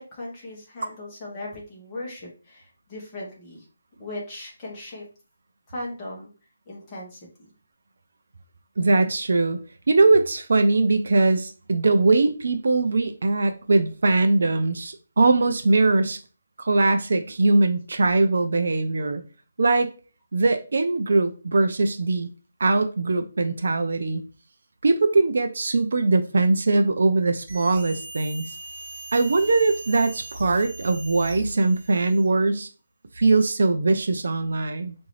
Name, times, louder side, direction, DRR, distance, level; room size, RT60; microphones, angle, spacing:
voice 1, 0.0-3.6 4.0-5.1 5.7-6.3 6.7-7.5, left 1 dB, 15° left, 1.0 m, -38 dB
voice 2, 8.8-9.6 9.9-16.2 16.6-19.2 19.6-19.9 20.3-22.3 22.6-24.2 24.8-28.5 29.1-32.7 33.2-34.9, right 3 dB, 55° right, 0.4 m, -21 dB
sound 1, 27.5-32.4, right 2 dB, 35° right, 1.0 m, -39 dB
4.7 x 2.6 x 3.1 m
hypercardioid pair, 180°, 0 cm